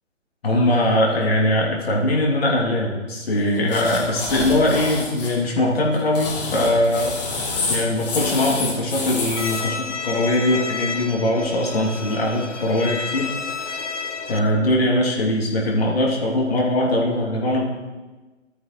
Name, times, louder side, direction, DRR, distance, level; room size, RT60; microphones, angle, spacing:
voice 1, 0.4-7.1 7.7-13.3 14.3-17.6, left 1 dB, 50° left, -3 dB, 2.9 m, -21 dB
sound 1, 3.7-5.3 5.9-9.6, left 3 dB, 35° left, 3.2 m, -27 dB
Bowed string instrument, 9.4-14.4, left 5 dB, 70° left, 1.2 m, -30 dB
16.0 x 12.5 x 3.2 m, 1.2 s
figure-of-eight pair, 145°, 37 cm